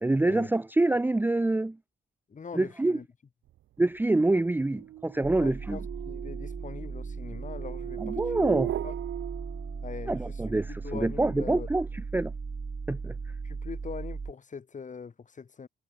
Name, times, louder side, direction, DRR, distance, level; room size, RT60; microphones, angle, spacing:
voice 1, 0.0-1.8 2.5-3.0 3.8-5.8 8.0-8.7 10.1-11.9 12.1-12.3 12.9-13.1, right 2 dB, 10° right, 0.7 m, -26 dB
voice 2, 2.3-3.1 5.4-9.0 9.8-11.7 13.4-15.7, left 5 dB, 40° left, 5.6 m, -42 dB
sound 1, 3.8-10.3, right 14 dB, 75° right, 1.2 m, -38 dB
sound 2, 5.2-14.3, right 4 dB, 30° right, 1.6 m, -37 dB
cardioid pair, 90°, 20 cm